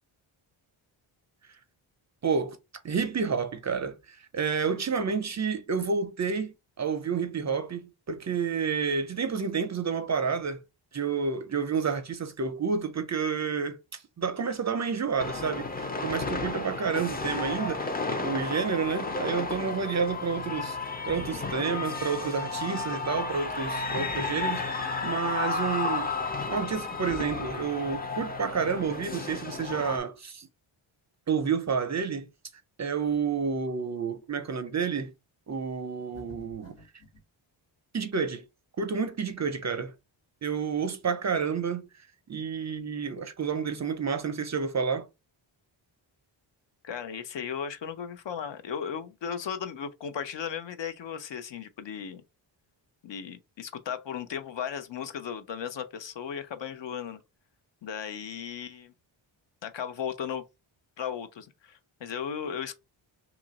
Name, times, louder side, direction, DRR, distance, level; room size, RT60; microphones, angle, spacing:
voice 1, 2.2-2.6 2.8-10.6 10.9-17.8 18.2-20.8 21.1-26.1 26.5-30.5 31.3-32.3 32.8-35.1 35.5-36.8 37.9-38.5 38.8-39.9 40.4-41.9 42.3-45.1, right 6 dB, 40° right, 0.4 m, -30 dB
sound 1, 15.2-30.0, left 3 dB, 20° left, 0.4 m, -33 dB
sound 2, 36.1-37.3, right 1 dB, 90° left, 1.7 m, -51 dB
voice 2, 46.8-52.2 53.0-57.2 57.8-58.9 59.6-60.5 61.0-62.7, left 7 dB, 60° left, 0.7 m, -36 dB
2.9 x 2.4 x 3.9 m
wide cardioid pair, 120°, 49 cm